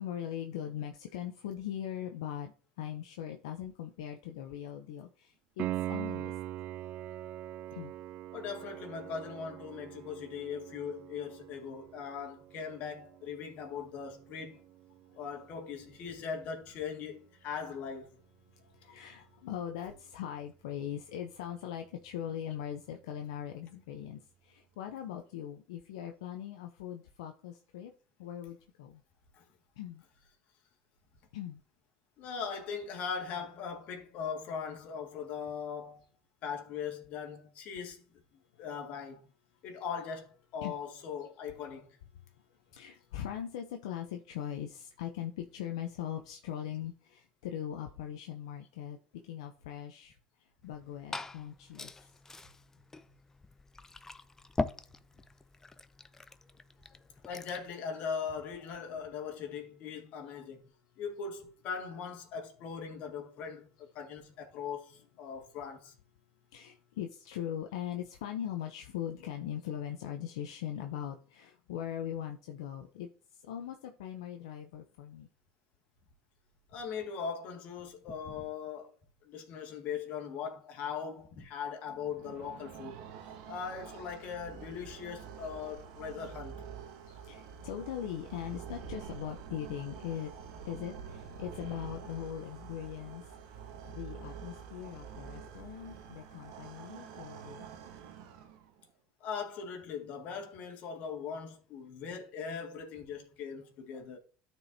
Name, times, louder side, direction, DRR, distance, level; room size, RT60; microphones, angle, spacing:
voice 1, 0.0-6.3 7.7-7.9 15.1-15.2 18.5-27.9 28.2-29.0 29.8-30.0 31.3-31.6 40.6-40.7 42.7-50.2 50.6-52.1 56.8-57.0 66.5-75.3 87.0-90.3 90.7-93.2 93.8-97.7 103.9-104.2, left 10 dB, 85° left, 0.6 m, -40 dB
Piano, 5.6-16.2 19.6-19.7, right 14 dB, 55° right, 0.3 m, -43 dB
voice 2, 8.3-14.6 15.1-18.2 29.3-29.4 32.2-36.0 36.4-38.0 38.6-39.3 39.6-42.0 57.2-60.7 61.0-65.9 76.7-78.9 79.2-83.1 83.5-86.6 99.2-104.2, left 6 dB, 60° left, 1.9 m, -40 dB
Glass / Fill (with liquid), 50.6-57.7, left 3 dB, 15° left, 0.5 m, -42 dB
sound 1, 81.9-98.8, right 7 dB, 80° right, 1.2 m, -47 dB
13.0 x 4.6 x 2.7 m
supercardioid pair, 90°, 3 cm